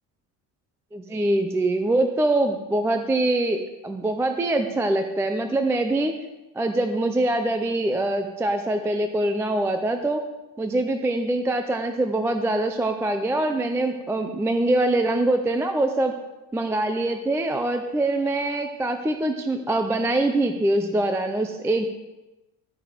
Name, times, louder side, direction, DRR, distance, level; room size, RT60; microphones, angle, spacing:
voice 1, 0.9-6.1 6.6-10.2 10.6-16.1 16.5-21.9, right 2 dB, 5° right, 6 dB, 0.4 m, -24 dB
13.0 x 9.3 x 5.0 m, 1.0 s
cardioid pair, 175°, 41 cm